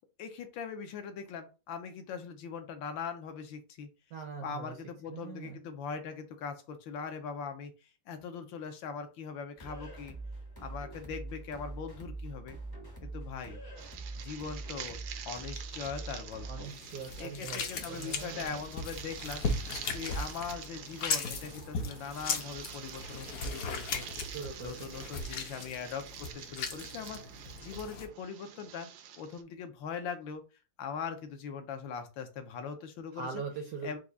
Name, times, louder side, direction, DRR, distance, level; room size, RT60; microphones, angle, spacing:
voice 1, 0.2-3.9 4.4-7.7 8.1-10.1 10.6-12.6 13.0-13.6 14.2-15.0 15.3-16.7 17.2-19.4 19.9-24.1 24.6-27.2 27.6-28.9 29.2-30.4 30.8-33.4 33.8-34.0, left 6 dB, 80° left, 7 dB, 1.4 m, -41 dB
voice 2, 4.1-4.8 5.1-5.6 16.4-18.6 24.3-25.0 33.1-34.0, right 5 dB, 70° right, 4 dB, 0.9 m, -42 dB
sound 1, 9.6-16.7, right 2 dB, 25° left, 0.4 m, -43 dB
sound 2, 13.8-29.4, right 9 dB, 85° right, 1.4 m, -47 dB
sound 3, 16.7-28.1, left 4 dB, 65° left, 0.9 m, -38 dB
4.7 x 2.3 x 3.8 m, 0.31 s
omnidirectional pair, 2.2 m